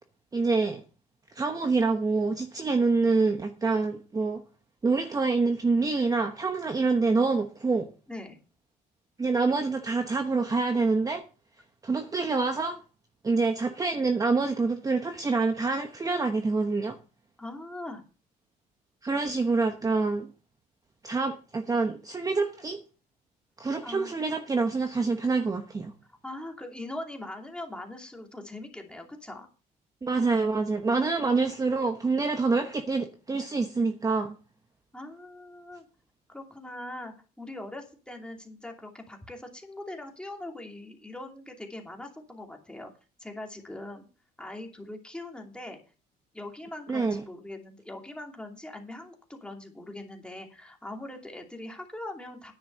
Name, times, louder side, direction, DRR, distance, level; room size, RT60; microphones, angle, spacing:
voice 1, 0.3-0.8 1.3-4.4 4.8-7.9 9.2-11.2 11.8-12.8 13.2-17.0 19.0-20.3 21.0-22.8 23.6-25.9 30.0-34.3 46.9-47.2, right 3 dB, 20° right, 1.0 m, -26 dB
voice 2, 8.1-8.4 17.4-18.0 23.8-24.1 26.2-29.5 34.9-35.9 36.3-42.9 43.2-44.1 44.4-45.8 46.3-52.5, left 1 dB, 5° left, 2.6 m, -41 dB
10.0 x 6.7 x 6.7 m
cardioid pair, 110°, 17 cm